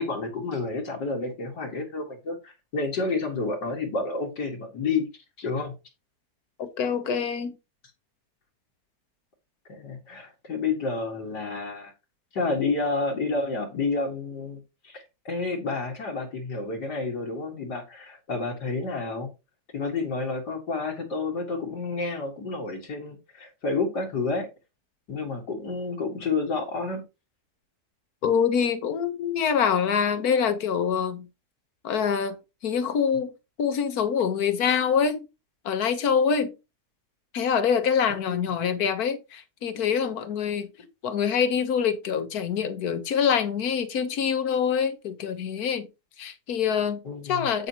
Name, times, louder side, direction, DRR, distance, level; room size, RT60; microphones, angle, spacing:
voice 1, 0.0-5.0 5.4-5.8 9.7-11.9 12.3-19.3 19.7-24.5 25.1-27.0 38.1-38.5 47.0-47.5, left 3 dB, 85° left, 2.5 m, -30 dB
voice 2, 6.6-7.5 28.2-31.2 31.8-32.4 32.6-33.3 33.6-35.3 35.6-36.5 37.3-40.7 41.0-45.9 46.2-47.7, left 7 dB, 65° left, 1.6 m, -25 dB
8.9 x 8.4 x 2.9 m
omnidirectional pair, 1.8 m